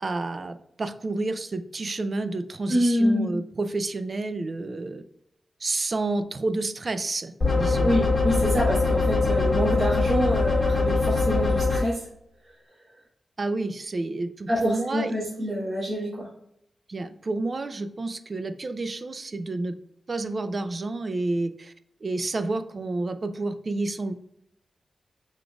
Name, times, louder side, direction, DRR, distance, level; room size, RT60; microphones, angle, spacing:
voice 1, 0.0-5.0 5.6-7.9 13.4-15.1 16.9-19.8 20.1-21.7 22.0-24.1, right 2 dB, 40° right, 10 dB, 0.4 m, -30 dB
voice 2, 2.7-3.3 7.8-12.1 14.5-16.3, equal, 55° right, -8 dB, 1.6 m, -26 dB
sound 1, 7.4-11.8, left 3 dB, 35° left, 1.5 m, -22 dB
5.0 x 3.7 x 2.3 m, 0.76 s
wide cardioid pair, 100°, 0 cm